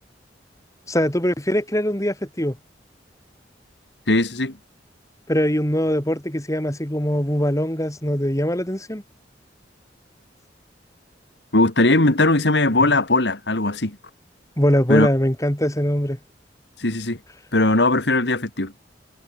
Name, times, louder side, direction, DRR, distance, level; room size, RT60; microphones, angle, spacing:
voice 1, 0.9-2.6 5.3-9.0 14.6-16.2, equal, 20° left, 3.8 m, -22 dB
voice 2, 4.1-4.6 11.5-14.0 14.9-15.1 16.8-17.2 17.5-18.7, left 2 dB, 70° left, 2.3 m, -19 dB
head